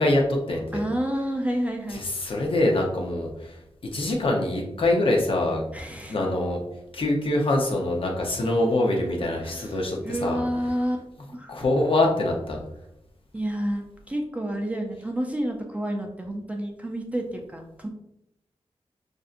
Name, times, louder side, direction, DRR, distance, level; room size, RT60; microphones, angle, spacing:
voice 1, 0.0-0.8 1.9-3.6 3.9-5.6 6.1-6.6 6.9-10.4 11.5-12.6, left 2 dB, 55° left, 0 dB, 0.7 m, -24 dB
voice 2, 0.7-2.1 5.7-6.2 9.2-9.8 10.0-11.0 11.3-11.5 13.3-17.9, equal, 10° right, 2 dB, 0.4 m, -29 dB
5.4 x 2.6 x 2.5 m, 0.83 s
wide cardioid pair, 140°, 11 cm